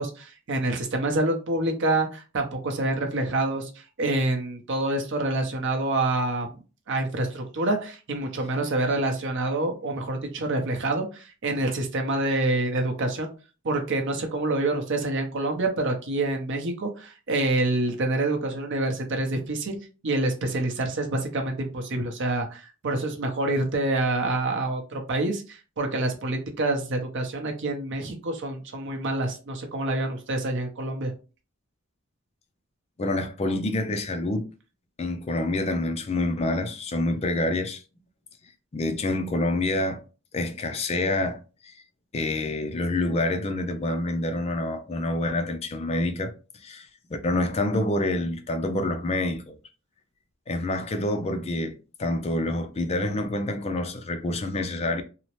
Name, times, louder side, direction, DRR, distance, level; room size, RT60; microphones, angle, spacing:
voice 1, 0.0-3.7 4.0-6.6 6.9-13.3 13.6-19.7 20.0-31.1, right 2 dB, 60° right, 0.7 m, -27 dB
voice 2, 33.0-34.5 35.0-37.8 38.7-40.0 40.3-41.7 42.1-46.3 46.6-46.9 47.2-49.6 50.5-51.7 52.0-55.0, left 2 dB, 30° left, 0.4 m, -27 dB
2.8 x 2.0 x 3.0 m
head